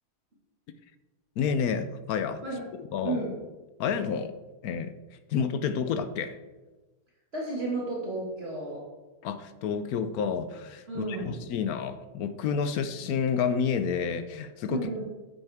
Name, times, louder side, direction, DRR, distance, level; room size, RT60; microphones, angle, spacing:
voice 1, 1.4-2.4 2.9-3.2 3.8-4.4 4.6-4.9 5.3-6.4 9.2-15.0, left 6 dB, 70° left, 11 dB, 1.0 m, -29 dB
voice 2, 7.3-8.8 10.9-11.4 14.7-15.0, right 3 dB, 35° right, -5 dB, 2.1 m, -32 dB
9.7 x 8.8 x 3.5 m, 1.2 s
omnidirectional pair, 1.8 m